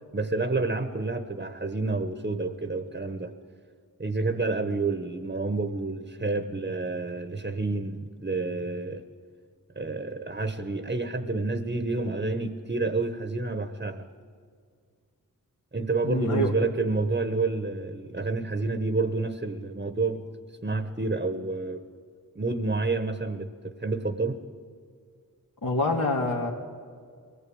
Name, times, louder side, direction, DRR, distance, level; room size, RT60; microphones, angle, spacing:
voice 1, 0.1-3.3 4.0-9.0 9.7-14.1 15.7-20.2 20.6-21.8 22.3-24.4, right 3 dB, 30° right, 9 dB, 1.1 m, -29 dB
voice 2, 16.0-16.5 25.6-26.5, left 2 dB, 70° left, -4 dB, 2.3 m, -26 dB
22.5 x 18.0 x 8.8 m, 2.1 s
wide cardioid pair, 90°, 35 cm